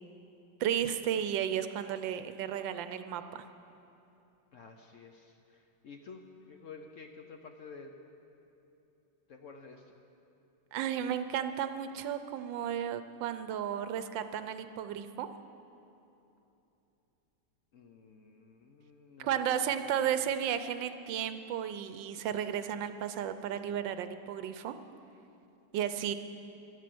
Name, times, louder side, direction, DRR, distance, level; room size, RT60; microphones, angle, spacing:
voice 1, 0.6-3.4 10.7-15.3 19.2-24.7 25.7-26.1, right 9 dB, 75° right, 10 dB, 1.3 m, -33 dB
voice 2, 4.5-7.9 9.3-9.9 17.7-19.7 20.0-20.1, left 4 dB, 70° left, 4 dB, 0.7 m, -51 dB
13.0 x 11.0 x 7.7 m, 2.9 s
omnidirectional pair, 2.2 m